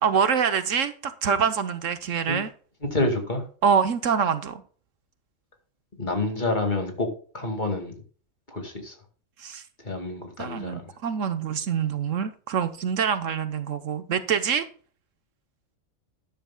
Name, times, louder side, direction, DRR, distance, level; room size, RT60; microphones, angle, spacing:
voice 1, 0.0-2.5 3.6-4.6 9.4-9.6 10.4-14.7, right 7 dB, 70° right, 1.2 m, -25 dB
voice 2, 2.8-3.4 6.0-7.9 8.5-8.9 9.8-10.9, left 2 dB, 35° left, 2.3 m, -28 dB
13.0 x 10.0 x 2.2 m
omnidirectional pair, 1.4 m